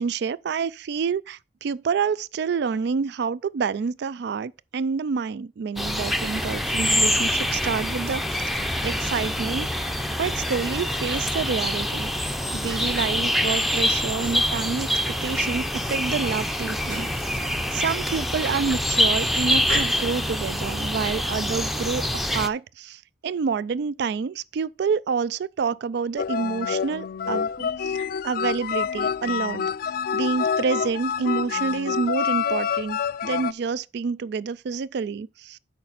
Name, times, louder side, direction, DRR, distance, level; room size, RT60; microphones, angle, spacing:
voice 1, 0.0-12.3 12.5-22.1 22.3-29.6 30.1-35.6, right 5 dB, 65° right, 0.4 m, -28 dB
sound 1, 5.8-22.5, equal, ahead, 0.6 m, -25 dB
sound 2, 16.1-16.5 16.8-17.2 19.6-20.1, right 2 dB, 85° right, 4.4 m, -35 dB
sound 3, 26.2-33.5, left 7 dB, 55° left, 0.3 m, -27 dB
8.6 x 5.7 x 4.0 m
head